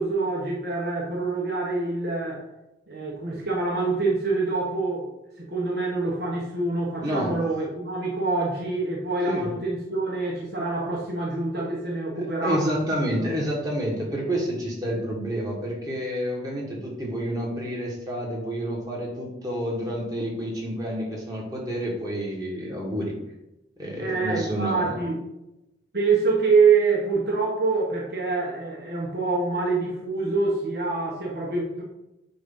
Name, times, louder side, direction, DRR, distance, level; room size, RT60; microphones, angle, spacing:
voice 1, 0.0-2.4 2.9-5.1 5.4-12.7 13.1-13.3 24.0-25.2 25.9-31.8, right 4 dB, 60° right, -3 dB, 1.1 m, -25 dB
voice 2, 7.0-7.4 9.3-9.5 12.1-23.1 23.8-25.0, equal, 20° right, -3 dB, 1.6 m, -29 dB
7.8 x 2.6 x 5.3 m, 0.93 s
head